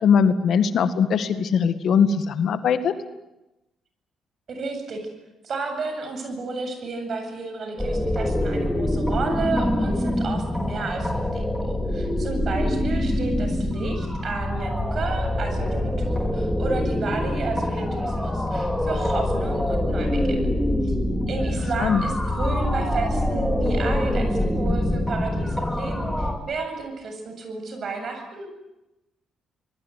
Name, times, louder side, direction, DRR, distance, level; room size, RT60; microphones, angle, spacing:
voice 1, 0.0-2.9 21.8-22.0, left 6 dB, 65° left, 11 dB, 1.9 m, -20 dB
voice 2, 4.5-5.0 5.4-20.4 20.8-20.9 21.3-28.5, right 4 dB, 50° right, 6 dB, 7.9 m, -32 dB
sound 1, 7.8-26.3, left 1 dB, 5° left, 4.7 m, -25 dB
27.0 x 21.0 x 9.4 m, 0.97 s
cardioid pair, 90°, 0 cm